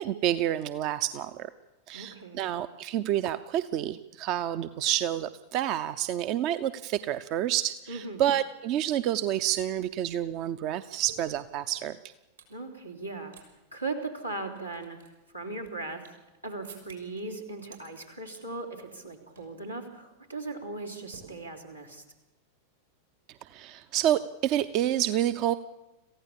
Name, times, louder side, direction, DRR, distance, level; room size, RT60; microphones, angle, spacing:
voice 1, 0.0-1.5 1.9-12.0 23.5-25.5, right 12 dB, 40° right, 13 dB, 0.7 m, -29 dB
voice 2, 1.9-2.4 7.9-8.2 12.5-13.3 13.7-16.1 16.4-22.0, right 2 dB, 90° right, 0 dB, 3.6 m, -38 dB
sound 1, 9.3-9.4 9.6-12.6 13.0-13.5 13.7-13.8 14.3-16.3 16.6-17.2 17.6-18.4 18.8-19.1 19.4-19.6 19.9-20.2 21.1-21.9, right 6 dB, 70° right, 5.4 m, -54 dB
27.0 x 15.5 x 7.2 m, 1.0 s
figure-of-eight pair, 90°, 0 cm